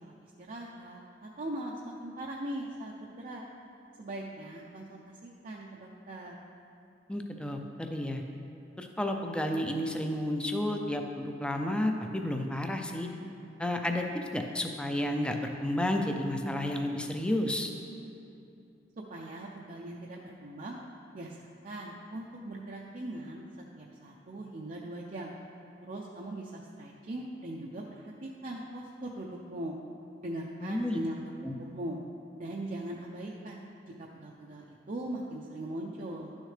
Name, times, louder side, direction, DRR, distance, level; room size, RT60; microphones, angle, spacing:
voice 1, 0.0-3.5 4.0-6.4 19.1-20.8 21.1-23.4 23.7-25.3 25.8-29.8 30.2-32.0 32.4-36.4, right 1 dB, 45° right, -2 dB, 0.5 m, -40 dB
voice 2, 7.1-8.2 8.8-13.1 13.6-14.0 14.3-17.7 30.6-31.0 31.4-31.5, left 1 dB, 5° left, 4 dB, 0.4 m, -31 dB
11.0 x 6.3 x 3.3 m, 2.6 s
head